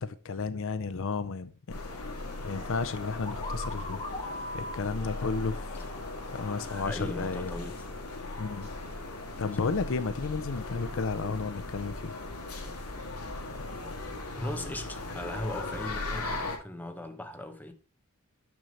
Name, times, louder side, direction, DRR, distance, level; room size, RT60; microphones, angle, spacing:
voice 1, 0.0-1.8 2.4-5.9 6.3-7.5 8.4-8.7 9.4-12.2, left 4 dB, 60° left, 0.5 m, -33 dB
sound 1, 1.7-16.6, left 2 dB, 80° left, 1.9 m, -38 dB
sound 2, 3.2-7.0, left 1 dB, 25° left, 1.9 m, -41 dB
voice 2, 6.5-7.8 9.6-9.7 14.4-17.7, left 1 dB, 10° left, 0.9 m, -38 dB
7.1 x 6.2 x 4.0 m
head